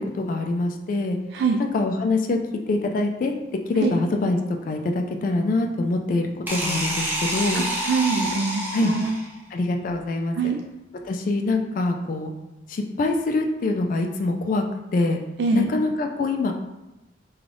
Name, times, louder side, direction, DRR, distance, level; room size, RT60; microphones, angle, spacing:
voice 1, 0.0-1.2 1.6-2.4 2.7-3.3 3.7-7.6 8.7-8.9 9.5-10.5 11.0-12.3 12.7-14.6 14.9-15.2 15.5-16.5, left 2 dB, 50° left, 3 dB, 0.3 m, -24 dB
voice 2, 1.3-1.6 3.8-3.9 7.5-9.2 10.3-10.6 15.4-15.7, right 4 dB, 65° right, 2 dB, 0.3 m, -24 dB
sound 1, 6.5-9.4, right 1 dB, 10° right, 0.7 m, -28 dB
3.7 x 2.3 x 3.3 m, 0.97 s
head